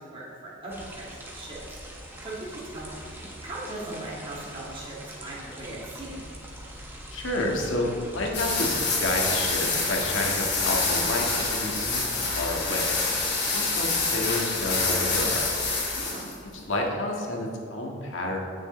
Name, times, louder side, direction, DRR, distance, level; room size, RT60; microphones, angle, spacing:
voice 1, 0.0-1.6 2.0-3.0 3.4-5.0 5.2-6.2 15.9-16.3, right 2 dB, 30° right, -8 dB, 2.3 m, -39 dB
sound 1, 0.7-16.0, equal, 10° right, 1.5 m, -42 dB
voice 2, 7.1-12.9 13.5-15.5 16.6-18.4, left 1 dB, 80° left, 0 dB, 1.8 m, -30 dB
sound 2, 8.3-16.3, left 3 dB, 60° left, 2.6 m, -27 dB
16.0 x 6.6 x 3.3 m, 2.4 s
head